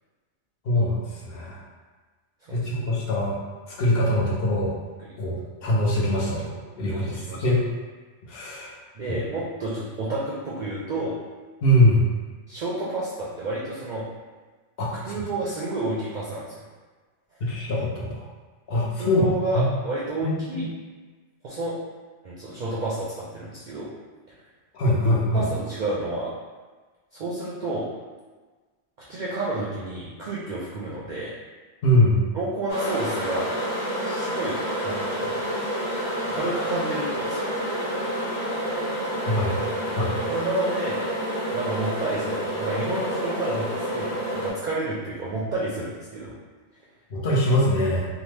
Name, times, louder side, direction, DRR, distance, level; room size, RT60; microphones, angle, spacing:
voice 1, 0.6-1.6 2.5-3.4 3.7-4.7 5.2-7.6 8.3-8.7 9.1-9.2 11.6-12.0 14.8-15.1 17.4-18.2 18.7-19.3 19.5-19.7 20.2-20.7 24.7-25.4 31.8-32.2 39.3-39.5 40.0-40.1 47.1-48.1, left 1 dB, 65° left, -4 dB, 0.8 m, -23 dB
voice 2, 6.8-7.4 9.0-11.2 12.5-14.1 14.9-16.6 19.0-20.7 21.4-21.8 22.2-23.9 24.3-24.4 25.3-26.3 27.1-27.9 29.1-31.3 32.3-33.5 34.0-35.4 35.7-35.8 36.3-37.4 40.3-41.0 41.5-46.3, right 2 dB, 55° right, -7 dB, 0.5 m, -30 dB
sound 1, 32.7-44.5, equal, 20° left, 0.9 m, -28 dB
2.8 x 2.0 x 3.2 m, 1.4 s
omnidirectional pair, 1.1 m